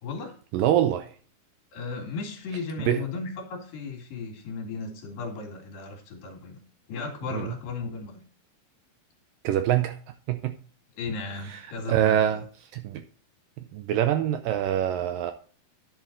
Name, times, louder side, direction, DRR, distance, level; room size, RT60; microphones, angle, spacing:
voice 1, 0.0-0.3 1.7-6.6 6.9-8.2 11.0-12.4, left 4 dB, 65° left, 3.8 m, -35 dB
voice 2, 0.5-1.1 2.9-3.0 7.3-7.5 9.4-10.0 10.3-10.6 11.9-12.5 12.7-13.0 13.7-15.3, right 11 dB, 75° right, 2.1 m, -24 dB
10.5 x 6.9 x 3.8 m
omnidirectional pair, 4.4 m